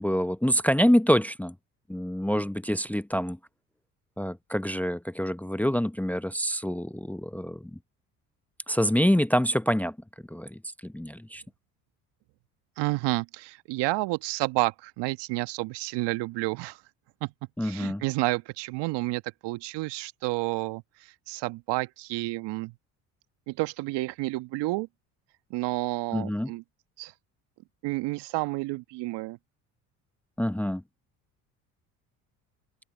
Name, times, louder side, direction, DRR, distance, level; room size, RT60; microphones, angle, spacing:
voice 1, 0.0-1.5 1.9-3.4 4.2-7.8 8.7-10.0 10.3-11.4 17.6-18.0 26.1-26.5 30.4-30.8, equal, 5° left, 0.9 m, -26 dB
voice 2, 12.8-16.8 17.2-17.3 17.6-22.7 23.5-24.9 25.5-26.6 27.0-27.1 27.8-29.4, right 21 dB, 65° right, 1.7 m, -30 dB
open air
hypercardioid pair, 65°, 45 cm